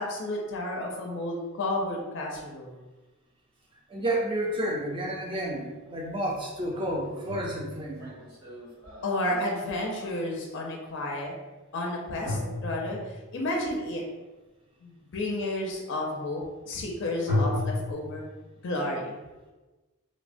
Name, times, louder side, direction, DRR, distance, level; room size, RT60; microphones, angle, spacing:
voice 1, 0.0-2.7 9.0-11.3 11.7-14.0 14.8-18.2 18.6-19.2, left 1 dB, 55° left, -1 dB, 0.4 m, -31 dB
voice 2, 3.9-8.0, right 1 dB, 25° right, -2 dB, 0.4 m, -30 dB
sound 1, 5.9-6.0 6.9-10.5 12.2-13.4 17.3-17.9, left 1 dB, 70° right, 1.0 m, -33 dB
3.1 x 2.0 x 2.5 m, 1.2 s
head